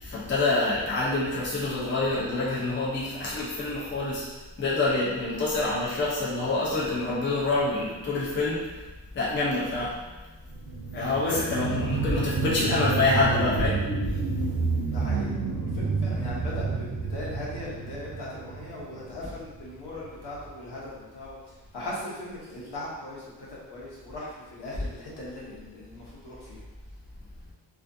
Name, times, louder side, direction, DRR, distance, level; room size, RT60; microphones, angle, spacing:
voice 1, 0.0-4.3 4.6-8.7 9.1-10.0 10.9-13.8 19.2-19.3, left 2 dB, 25° left, -6 dB, 0.4 m, -26 dB
sound 1, 10.5-19.6 20.0-20.1, right 4 dB, 80° right, 0.6 m, -29 dB
voice 2, 11.3-11.9 14.9-21.4 21.7-26.6, left 1 dB, 65° left, -6 dB, 0.9 m, -39 dB
2.4 x 2.4 x 2.5 m, 1.1 s
wide cardioid pair, 155°, 44 cm